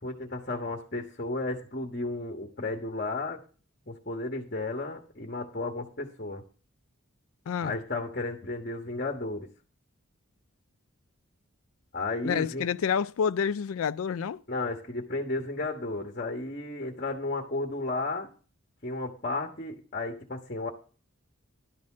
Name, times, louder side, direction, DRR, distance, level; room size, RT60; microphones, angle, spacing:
voice 1, 0.0-3.4 3.9-6.4 7.6-9.5 11.9-12.7 14.5-18.3 18.8-20.7, left 2 dB, 40° left, 1.4 m, -33 dB
voice 2, 7.5-7.8 12.2-14.4, left 7 dB, 80° left, 0.4 m, -28 dB
12.0 x 4.2 x 7.3 m
head